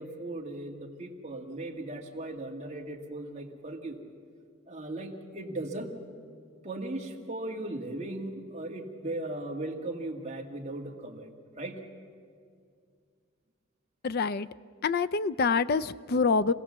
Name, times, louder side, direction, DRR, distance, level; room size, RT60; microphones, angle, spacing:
voice 1, 0.0-4.0 4.7-5.9 6.6-11.3 11.6-11.8, right 2 dB, 30° right, 1 dB, 1.8 m, -37 dB
voice 2, 14.0-14.5 14.8-16.5, left 4 dB, 45° left, 13 dB, 0.5 m, -26 dB
26.0 x 17.0 x 7.4 m, 2.2 s
head